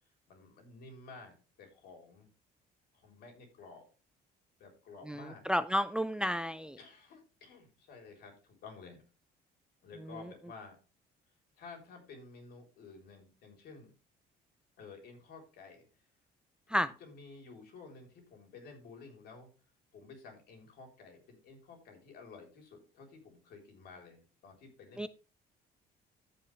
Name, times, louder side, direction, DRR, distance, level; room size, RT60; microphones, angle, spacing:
voice 1, 0.3-2.3 2.9-3.9 4.6-5.5 6.8-9.0 9.8-10.8 11.6-13.9 14.8-15.9 16.7-19.5 19.9-25.1, left 4 dB, 70° left, 3 dB, 3.8 m, -52 dB
voice 2, 5.5-6.8 16.7-16.9 25.0-25.1, equal, 5° right, 14 dB, 0.4 m, -31 dB
14.0 x 5.4 x 3.3 m, 0.35 s
cardioid pair, 110°, 17 cm